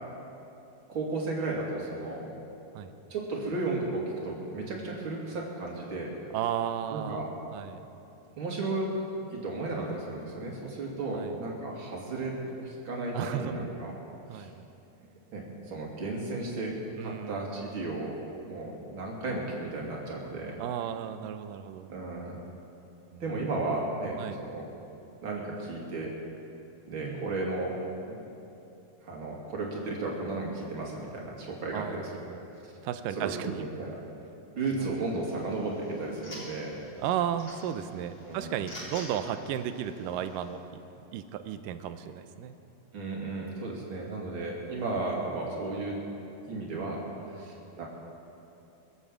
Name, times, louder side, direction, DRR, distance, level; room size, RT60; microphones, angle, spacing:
voice 1, 0.9-2.3 2.8-2.9 3.1-6.1 6.9-7.3 8.4-8.9 9.3-13.9 14.3-14.5 15.3-16.7 17.0-18.2 18.5-20.5 21.9-22.4 23.2-24.7 25.2-26.1 26.9-27.7 29.0-32.1 33.2-33.3 33.6-33.9 34.5-36.8 38.2-38.5 42.9-46.0 46.4-47.0 47.4-47.8, right 2 dB, 40° right, -2 dB, 3.0 m, -34 dB
voice 2, 6.3-7.8 11.1-11.4 13.1-13.6 14.3-14.7 17.0-17.5 20.6-21.9 23.1-23.5 24.2-24.4 27.0-27.4 31.7-32.5 32.8-33.7 34.7-34.8 37.0-40.8 41.1-42.5 47.2-47.6, right 9 dB, 85° right, 10 dB, 2.3 m, -34 dB
sound 1, 35.1-40.5, left 1 dB, 35° left, 4.2 m, -48 dB
22.5 x 8.2 x 7.5 m, 2.8 s
omnidirectional pair, 3.9 m